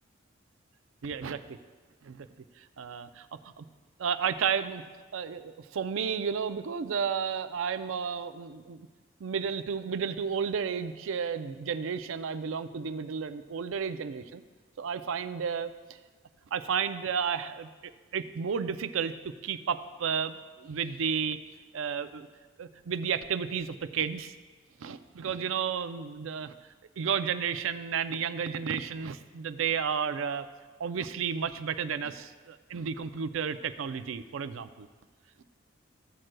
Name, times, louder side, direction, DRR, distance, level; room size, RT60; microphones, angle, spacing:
voice 1, 1.0-1.6 2.0-2.3 2.6-3.6 4.0-4.8 5.1-8.9 9.2-14.4 14.8-15.7 16.5-19.1 19.4-21.4 21.7-22.3 22.6-24.3 24.8-26.5 27.0-30.5 30.8-34.9, right 6 dB, 80° right, 10 dB, 0.4 m, -32 dB
14.5 x 7.6 x 2.2 m, 1.4 s
head